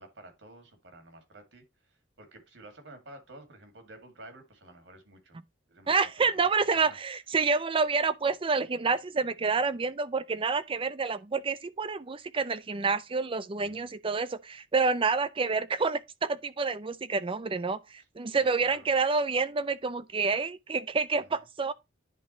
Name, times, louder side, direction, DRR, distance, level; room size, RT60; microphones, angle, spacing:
voice 1, 0.0-5.4 5.7-7.0 13.6-13.9 18.4-18.9 21.2-21.4, right 1 dB, 70° right, 2.2 m, -51 dB
voice 2, 5.9-21.7, right 4 dB, 30° right, 0.5 m, -28 dB
10.5 x 3.7 x 3.0 m
head